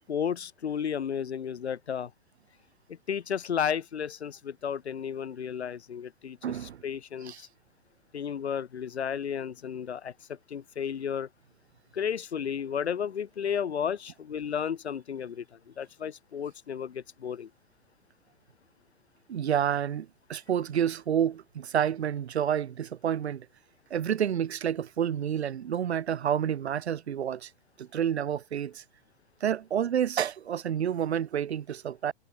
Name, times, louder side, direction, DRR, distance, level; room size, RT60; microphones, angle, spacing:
voice 1, 0.1-2.1 3.1-6.4 6.8-7.5 8.1-11.3 11.9-15.4 15.8-17.5, left 8 dB, 90° left, 1.3 m, -33 dB
voice 2, 6.4-6.8 7.2-7.4 19.3-23.5 23.9-27.5 27.8-28.8 29.4-32.1, right 9 dB, 90° right, 0.8 m, -29 dB
hypercardioid pair, 130°, 32 cm